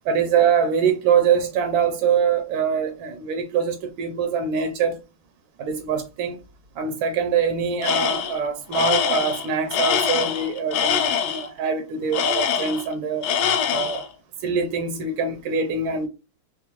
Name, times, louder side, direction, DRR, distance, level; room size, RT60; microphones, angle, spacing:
voice 1, 0.0-5.0 5.6-6.4 6.8-13.3 13.7-14.0 14.4-16.1, right 6 dB, 85° right, 1.4 m, -23 dB
Tools, 7.8-8.4 8.7-11.5 12.1-12.9 13.2-14.1, left 8 dB, 90° left, 1.5 m, -23 dB
4.7 x 2.0 x 2.8 m
omnidirectional pair, 2.2 m